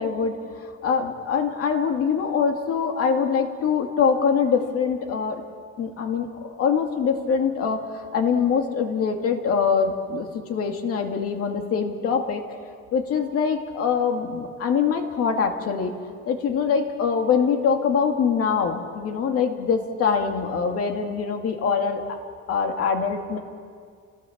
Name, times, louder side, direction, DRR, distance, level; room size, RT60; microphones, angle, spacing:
voice 1, 0.0-5.4 5.8-12.4 12.9-15.9 16.3-22.2 22.5-23.4, left 6 dB, 45° left, 4 dB, 2.2 m, -24 dB
30.0 x 17.5 x 7.3 m, 2.1 s
cardioid pair, 165°, 31 cm